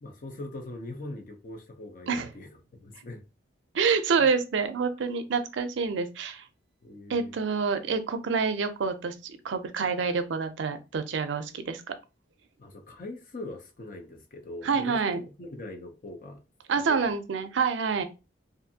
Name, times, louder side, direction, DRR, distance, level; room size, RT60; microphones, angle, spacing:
voice 1, 0.0-3.2 4.2-4.3 6.8-7.4 12.6-16.4 16.8-17.1, left 2 dB, 45° left, 0.5 m, -41 dB
voice 2, 3.7-6.4 7.1-11.9 14.6-15.2 16.7-18.0, right 5 dB, 85° right, 0.4 m, -27 dB
2.5 x 2.5 x 2.7 m
head